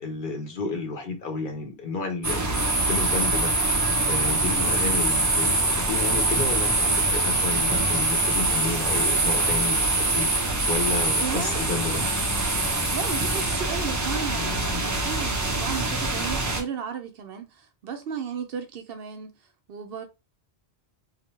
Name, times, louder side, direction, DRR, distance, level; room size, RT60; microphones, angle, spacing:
voice 1, 0.0-3.5 4.1-10.3 10.7-12.0, left 4 dB, 55° left, 0.8 m, -31 dB
sound 1, 2.2-16.6, right 2 dB, 20° right, 0.5 m, -24 dB
voice 2, 11.2-12.2 12.9-19.4 19.7-20.0, right 7 dB, 70° right, 0.8 m, -35 dB
2.8 x 2.1 x 3.0 m
omnidirectional pair, 1.1 m